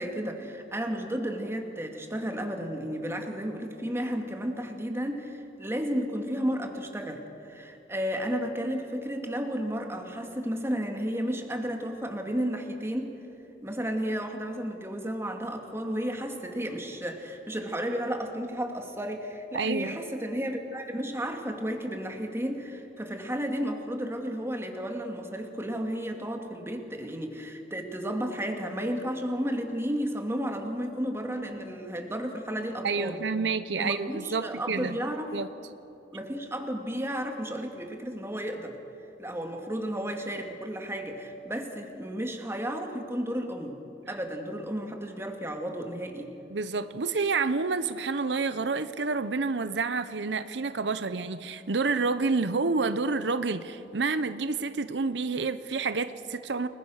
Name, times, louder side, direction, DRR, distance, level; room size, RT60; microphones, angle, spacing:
voice 1, 0.0-13.2 13.6-33.2 33.8-35.4 36.1-38.8 39.2-43.8 44.1-46.3, equal, 15° right, 3 dB, 2.3 m, -33 dB
voice 2, 19.5-20.0 32.8-35.0 35.3-35.5 46.5-56.7, right 4 dB, 85° right, 12 dB, 0.8 m, -29 dB
30.0 x 21.0 x 6.5 m, 2.9 s
head